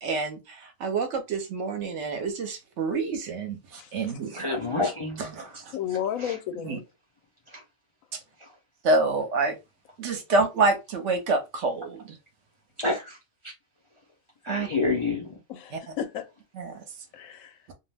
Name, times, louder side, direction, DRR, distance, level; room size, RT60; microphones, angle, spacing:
voice 1, 0.0-4.5 5.2-5.7 6.6-6.8 8.1-8.2 8.8-9.6 10.0-12.2 14.5-14.7 15.7-15.8 16.6-16.8, right 3 dB, 65° right, 0.9 m, -27 dB
voice 2, 4.4-5.2 6.2-6.3 12.8-13.2 14.4-15.4, left 3 dB, 40° left, 0.4 m, -28 dB
voice 3, 5.7-6.8 14.7-14.8 15.5-16.3 17.1-17.6, left 10 dB, 80° left, 1.0 m, -33 dB
2.5 x 2.1 x 3.2 m
omnidirectional pair, 1.4 m